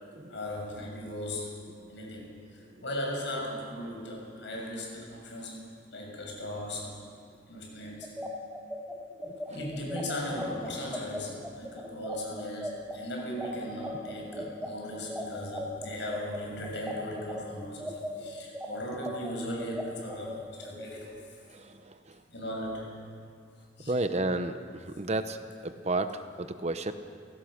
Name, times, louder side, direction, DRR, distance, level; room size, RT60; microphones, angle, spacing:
voice 1, 0.3-1.6 1.9-7.0 7.5-8.1 9.5-21.4 22.3-22.9 23.8-23.9, equal, 70° left, 0 dB, 6.8 m, -38 dB
sound 1, 8.0-17.4 17.8-20.9, equal, 5° right, 1.9 m, -38 dB
voice 2, 9.2-9.6 14.4-14.5 17.8-17.9 21.5-22.2 23.9-26.9, right 2 dB, 35° right, 9 dB, 0.9 m, -33 dB
28.5 x 17.5 x 6.6 m, 2.2 s
head